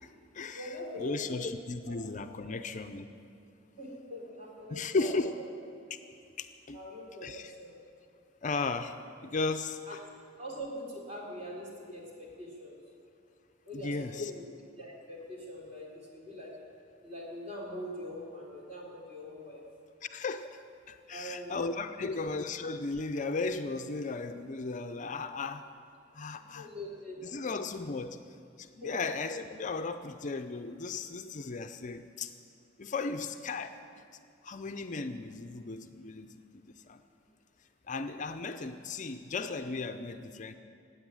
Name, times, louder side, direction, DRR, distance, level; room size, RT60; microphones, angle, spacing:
voice 1, 0.0-3.1 4.7-5.3 5.9-6.0 6.4-6.8 7.2-7.5 8.4-9.0 9.2-10.0 13.7-14.3 20.0-20.6 20.9-25.6 26.1-26.7 27.2-28.2 28.6-32.3 32.8-34.1 34.4-37.0 37.9-40.5, left 3 dB, 40° left, 9 dB, 0.5 m, -36 dB
voice 2, 0.5-1.5 1.9-2.0 2.4-2.6 3.8-5.5 6.7-7.8 9.9-10.0 10.4-12.8 13.7-14.5 14.8-16.5 17.0-19.6 21.1-21.5 21.9-22.1 26.5-27.4 28.8-28.9, equal, 35° right, -3 dB, 3.6 m, -43 dB
15.0 x 8.7 x 9.8 m, 2.3 s
head